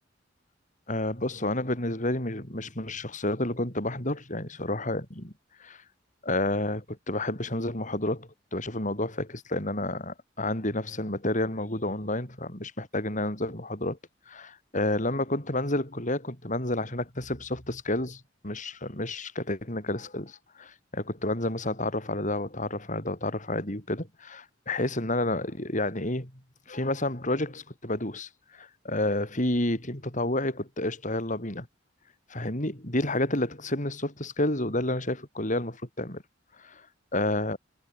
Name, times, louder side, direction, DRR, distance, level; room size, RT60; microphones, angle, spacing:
voice 1, 0.9-5.3 5.6-5.8 6.2-14.0 14.3-26.3 26.7-31.7 32.3-36.2 36.6-36.8 37.1-37.6, left 1 dB, 40° left, 6.4 m, -30 dB
head